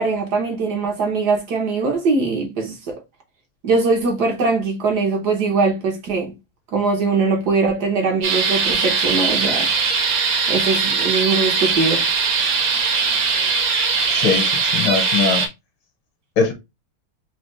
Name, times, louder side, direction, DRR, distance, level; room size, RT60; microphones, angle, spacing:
voice 1, 0.0-2.9 3.6-6.3 6.7-9.7 10.5-12.0, right 4 dB, 55° right, 1.4 m, -21 dB
sound 1, 8.2-15.5, right 5 dB, 85° right, 2.0 m, -20 dB
voice 2, 14.1-15.5 16.4-16.5, left 5 dB, 65° left, 1.7 m, -20 dB
4.2 x 2.9 x 3.0 m
omnidirectional pair, 2.4 m